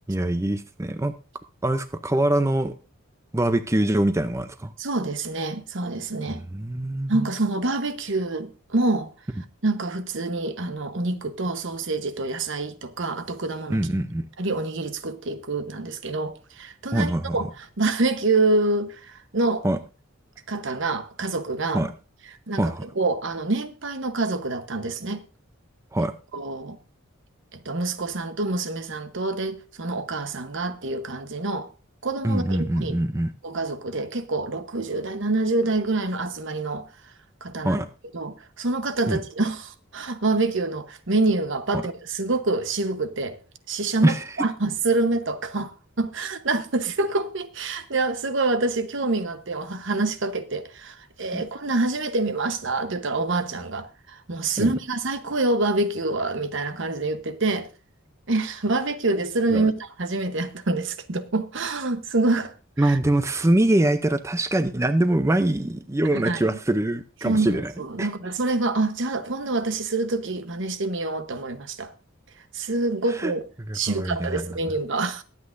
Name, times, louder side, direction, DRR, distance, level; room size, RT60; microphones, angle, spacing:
voice 1, 0.1-1.1 1.6-2.7 3.3-4.7 6.3-7.3 13.7-14.3 16.9-17.5 19.6-19.8 21.7-21.9 22.6-22.8 25.9-26.1 32.2-33.3 37.6-37.9 39.1-39.2 41.7-41.8 44.0-44.3 51.3-51.4 54.6-54.7 59.5-59.7 62.8-67.7 68.0-68.1 73.1-73.3 73.7-74.6, right 1 dB, 15° right, 0.5 m, -23 dB
voice 2, 4.8-6.4 7.1-9.1 9.6-13.8 14.4-19.6 20.5-21.8 22.5-25.2 26.3-26.8 27.5-31.7 32.0-33.0 33.4-36.9 37.4-37.8 38.1-43.4 43.7-57.7 58.3-63.0 66.1-66.6 67.2-71.9 72.5-73.4 73.7-75.2, right 2 dB, 60° right, 1.0 m, -26 dB
22.0 x 8.4 x 2.6 m
head